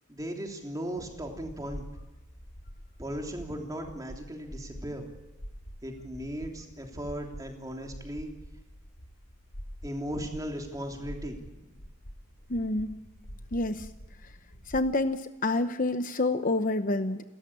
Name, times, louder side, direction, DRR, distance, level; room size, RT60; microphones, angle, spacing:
voice 1, 0.1-1.9 3.0-5.1 5.8-8.3 9.8-11.7, equal, 15° right, 2 dB, 3.2 m, -37 dB
sound 1, 1.0-15.0, equal, 75° left, 4.7 m, -46 dB
voice 2, 12.5-13.0 13.5-13.9 14.7-17.2, left 2 dB, 40° left, 9 dB, 0.8 m, -28 dB
29.5 x 14.0 x 8.7 m, 1.1 s
head